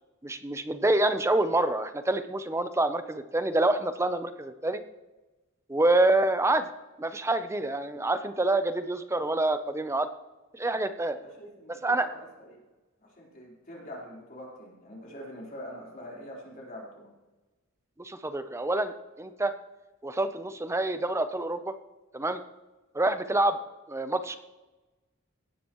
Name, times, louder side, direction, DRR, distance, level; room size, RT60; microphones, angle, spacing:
voice 1, 0.2-4.8 5.7-6.7 7.0-10.1 10.5-11.2 11.8-12.1 18.0-19.5 20.0-21.7 22.1-22.4 22.9-23.6 23.9-24.4, right 2 dB, 15° right, 10 dB, 0.7 m, -27 dB
voice 2, 11.1-12.6 13.0-17.1, equal, 40° left, -4 dB, 4.1 m, -44 dB
17.5 x 12.0 x 3.1 m, 1.1 s
head